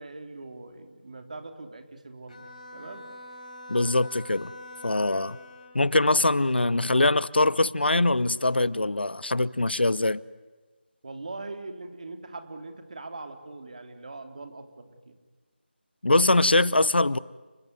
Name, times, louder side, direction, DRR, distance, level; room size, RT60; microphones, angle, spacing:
voice 1, 0.0-2.4 2.7-3.1 11.0-15.2, right 3 dB, 40° right, 3.2 m, -41 dB
Bowed string instrument, 2.3-5.9, left 1 dB, 40° left, 6.8 m, -45 dB
voice 2, 3.7-4.5 4.8-5.4 5.7-10.2 16.0-17.2, left 2 dB, 70° left, 0.8 m, -23 dB
30.0 x 21.0 x 9.6 m
figure-of-eight pair, 165°, 6 cm